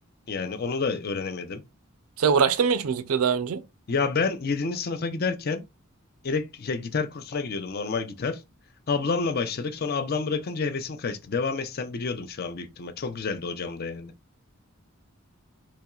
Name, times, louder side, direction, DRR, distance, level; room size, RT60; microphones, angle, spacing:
voice 1, 0.3-1.6 3.9-5.6 6.2-8.4 8.9-14.1, left 4 dB, 45° left, 0.5 m, -29 dB
voice 2, 2.2-3.6, right 6 dB, 85° right, 0.5 m, -22 dB
4.2 x 2.8 x 2.3 m
head